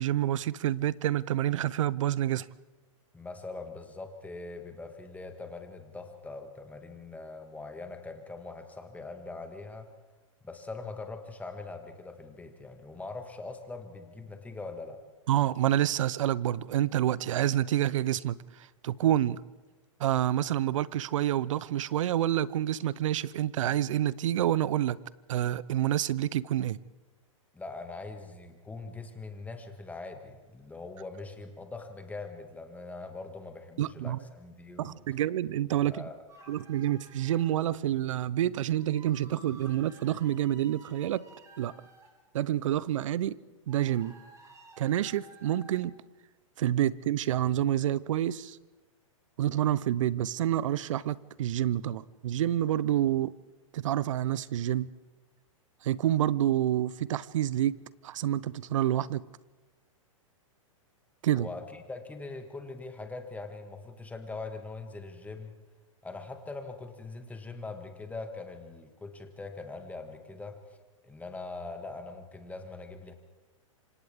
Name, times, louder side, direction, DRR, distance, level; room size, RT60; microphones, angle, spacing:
voice 1, 0.0-2.5 15.3-19.4 20.0-25.0 25.3-26.8 33.8-34.2 34.8-36.0 36.5-41.3 41.6-41.7 42.3-43.4 43.7-44.2 44.8-46.0 46.6-48.6 49.4-53.3 53.7-54.9 55.8-57.8 58.0-59.2 61.2-61.5, right 12 dB, 65° right, 0.7 m, -28 dB
voice 2, 3.1-9.9 10.4-15.0 27.5-35.0 35.9-36.2 61.3-65.5 66.0-70.8 71.0-73.1, left 3 dB, 10° left, 2.1 m, -42 dB
sound 1, 36.3-37.5 38.7-42.1 43.7-45.7, right 2 dB, 20° right, 6.2 m, -54 dB
27.5 x 25.5 x 3.7 m
hypercardioid pair, 120°, 17 cm